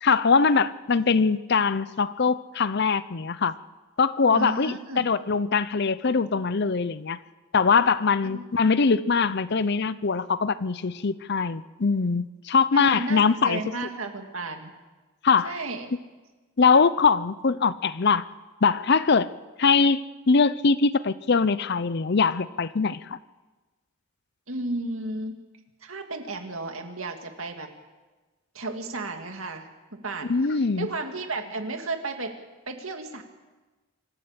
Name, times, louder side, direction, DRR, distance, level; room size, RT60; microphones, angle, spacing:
voice 1, 0.0-3.5 4.0-7.2 7.5-13.6 15.2-15.6 16.6-18.3 18.6-19.3 19.6-23.2 30.3-30.9, left 5 dB, 50° left, 16 dB, 0.6 m, -22 dB
voice 2, 4.3-5.1 8.2-8.4 12.7-14.7 15.4-15.9 24.5-25.4 25.8-27.7 28.5-29.7 29.9-32.3 32.7-33.2, right 2 dB, 70° right, 5 dB, 2.3 m, -33 dB
25.0 x 14.0 x 8.1 m, 1.2 s
head